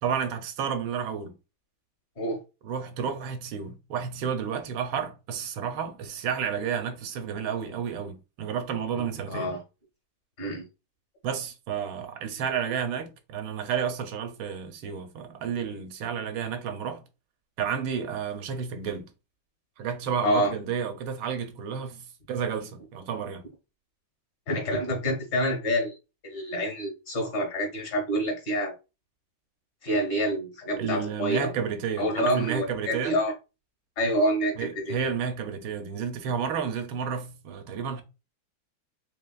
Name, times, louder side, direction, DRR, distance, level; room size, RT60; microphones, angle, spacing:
voice 1, 0.0-1.3 2.6-9.5 11.2-17.0 17.6-19.1 19.8-23.4 30.8-33.2 34.6-38.0, right 7 dB, 80° right, 1.5 m, -31 dB
voice 2, 9.0-9.6 10.4-10.6 20.2-20.5 24.5-26.0 26.2-28.7 29.8-31.5 32.0-33.3 34.0-35.0, equal, 55° left, 1.8 m, -27 dB
4.0 x 3.5 x 2.3 m
omnidirectional pair, 2.2 m